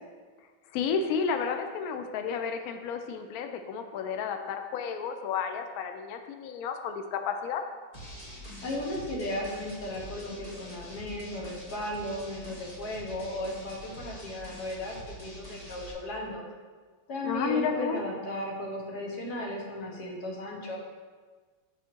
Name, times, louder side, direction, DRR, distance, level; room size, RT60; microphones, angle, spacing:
voice 1, 0.7-7.6 14.1-14.2 17.2-18.0, left 6 dB, 90° left, 6 dB, 0.8 m, -32 dB
sound 1, 7.9-15.9, equal, 30° left, 0.7 m, -45 dB
voice 2, 8.6-16.4 17.1-20.8, left 1 dB, 60° left, -1 dB, 1.5 m, -35 dB
7.4 x 3.7 x 4.4 m, 1.5 s
omnidirectional pair, 2.1 m